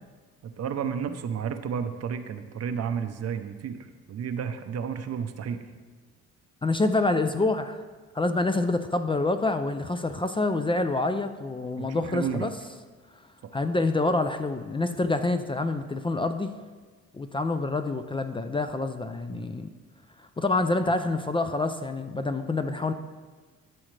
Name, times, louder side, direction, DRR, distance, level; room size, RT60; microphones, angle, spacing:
voice 1, 0.4-5.6 11.8-12.5 13.4-13.5 19.3-19.5, right 7 dB, 55° right, 8 dB, 0.7 m, -32 dB
voice 2, 6.6-7.8 8.1-12.5 13.5-16.5 17.1-19.7 20.2-22.9, left 2 dB, 15° left, 8 dB, 0.4 m, -27 dB
12.5 x 6.3 x 3.3 m, 1.4 s
cardioid pair, 90°, 30 cm